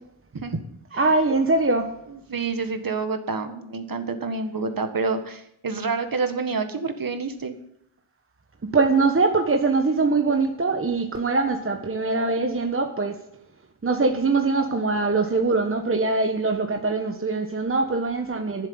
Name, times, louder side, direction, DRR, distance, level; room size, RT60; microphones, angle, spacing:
voice 1, 0.9-1.9 8.7-13.2 13.8-18.7, right 3 dB, 25° right, 5 dB, 1.2 m, -22 dB
voice 2, 2.1-7.5, right 4 dB, 45° right, 7 dB, 1.7 m, -28 dB
11.5 x 7.6 x 8.7 m, 0.75 s
cardioid pair, 70°, 48 cm